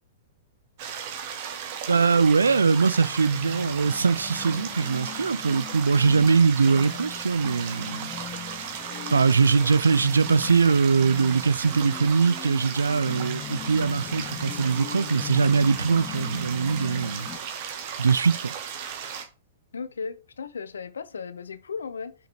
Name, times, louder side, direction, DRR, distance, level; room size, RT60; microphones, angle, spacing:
sound 1, 0.8-19.2, right 7 dB, 45° right, 1.4 m, -36 dB
voice 1, 1.9-8.1 9.1-17.3 18.0-18.5, right 5 dB, 80° right, 0.4 m, -22 dB
sound 2, 2.1-17.4, left 12 dB, 30° left, 0.5 m, -40 dB
voice 2, 19.7-22.1, left 5 dB, 75° left, 0.6 m, -35 dB
6.2 x 5.6 x 3.1 m
figure-of-eight pair, 110°, 0 cm